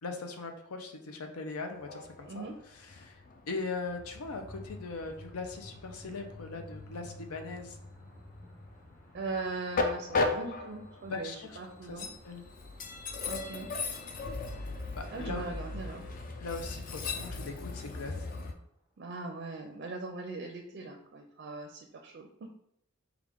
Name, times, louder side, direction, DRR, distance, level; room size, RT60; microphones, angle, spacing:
voice 1, 0.0-3.2 3.5-7.8 11.1-12.4 14.9-15.5 16.4-18.1, left 3 dB, 90° left, 5 dB, 0.6 m, -40 dB
Train, 1.7-18.5, left 3 dB, 40° left, 0.4 m, -38 dB
sound 1, 3.9-17.8, left 1 dB, 15° left, 1.0 m, -53 dB
voice 2, 9.1-12.1 13.3-13.7 15.1-16.1 19.0-22.5, right 3 dB, 50° right, 2 dB, 0.4 m, -40 dB
4.7 x 2.4 x 3.5 m, 0.73 s
head